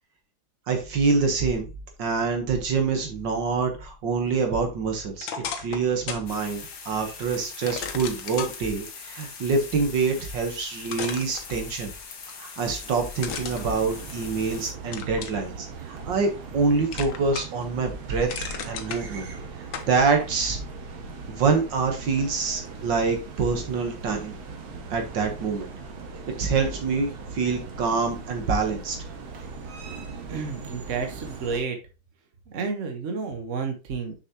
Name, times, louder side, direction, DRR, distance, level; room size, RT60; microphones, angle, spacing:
voice 1, 0.7-1.7 2.0-5.3 5.6-11.9 12.4-19.3 19.6-20.6 21.3-24.3 24.9-25.7 26.3-29.0, right 4 dB, 65° right, 4 dB, 1.9 m, -26 dB
sound 1, 5.2-6.3 6.7-6.8 7.7-8.5 10.3-10.4 10.9-12.0 13.2-14.5 14.9-15.4 16.0-16.6 16.9-17.7 18.0-19.0 19.7-19.9, left 7 dB, 75° left, 1.7 m, -35 dB
sound 2, 6.3-14.7, left 5 dB, 50° left, 1.5 m, -42 dB
sound 3, 13.3-31.6, right 4 dB, 85° right, 2.0 m, -40 dB
voice 2, 30.3-31.8 32.5-34.1, right 5 dB, 45° right, 4 dB, 1.4 m, -31 dB
6.6 x 6.1 x 2.9 m, 0.29 s
omnidirectional pair, 2.2 m